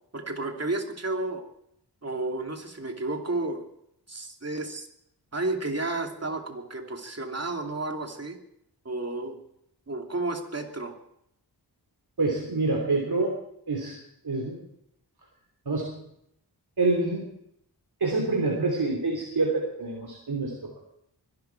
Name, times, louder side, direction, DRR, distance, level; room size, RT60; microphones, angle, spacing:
voice 1, 0.1-1.4 2.0-3.6 4.1-4.9 5.3-8.4 8.8-9.4 9.9-10.9, right 2 dB, 40° right, 2 dB, 2.8 m, -32 dB
voice 2, 12.2-13.3 13.7-14.0 14.2-14.6 15.6-16.0 16.8-17.3 18.0-20.8, right 3 dB, 70° right, -1 dB, 3.1 m, -27 dB
23.5 x 11.5 x 4.6 m, 0.75 s
wide cardioid pair, 70°, 41 cm